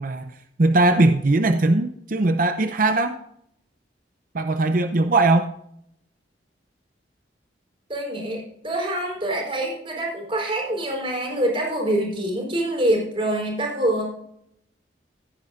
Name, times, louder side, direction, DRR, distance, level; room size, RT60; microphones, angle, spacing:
voice 1, 0.0-3.2 4.3-5.5, right 2 dB, 50° right, 8 dB, 0.6 m, -20 dB
voice 2, 7.9-14.1, right 1 dB, 30° right, 0 dB, 4.4 m, -25 dB
16.0 x 9.5 x 2.5 m, 0.72 s
head